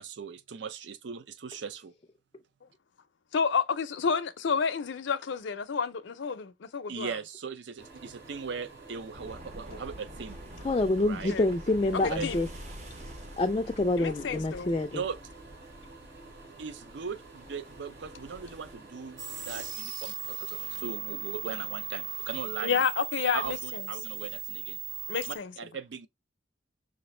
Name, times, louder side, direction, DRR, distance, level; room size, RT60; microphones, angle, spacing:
voice 1, 0.0-1.9 6.9-10.4 11.0-11.4 12.1-12.2 14.9-15.2 16.6-22.8 23.3-24.8 25.3-26.1, right 6 dB, 70° right, 0.5 m, -39 dB
voice 2, 3.3-7.1 11.3-11.5 11.9-12.4 14.0-14.8 22.6-23.8 25.1-25.5, left 6 dB, 80° left, 0.5 m, -30 dB
sound 1, 7.8-19.7, right 3 dB, 55° right, 2.3 m, -50 dB
sound 2, 9.1-18.7, equal, 35° right, 0.8 m, -47 dB
voice 3, 10.6-12.5 13.4-15.0, left 2 dB, 25° left, 0.3 m, -27 dB
sound 3, 19.2-25.4, right 10 dB, 85° right, 0.9 m, -37 dB
5.1 x 2.5 x 3.1 m
head